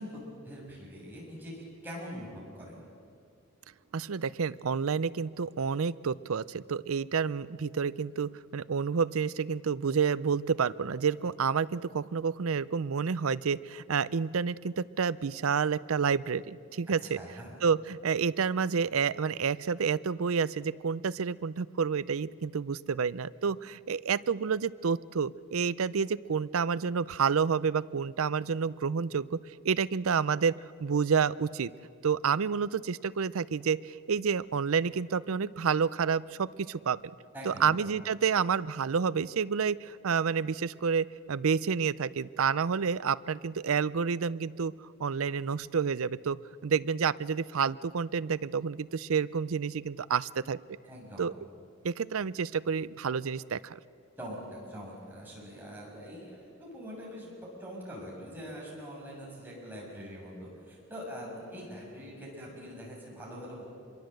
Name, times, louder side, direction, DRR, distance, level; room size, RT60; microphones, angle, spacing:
voice 1, 0.0-2.8 16.9-17.5 37.3-37.8 50.8-51.3 54.2-63.7, equal, 10° right, -4 dB, 6.7 m, -43 dB
voice 2, 3.9-17.2 17.6-29.4 29.6-31.7 32.0-37.0 37.4-44.7 45.0-46.4 46.6-50.6 51.2-51.3 51.8-53.8, right 6 dB, 80° right, 18 dB, 0.5 m, -29 dB
26.0 x 22.5 x 7.8 m, 2.3 s
head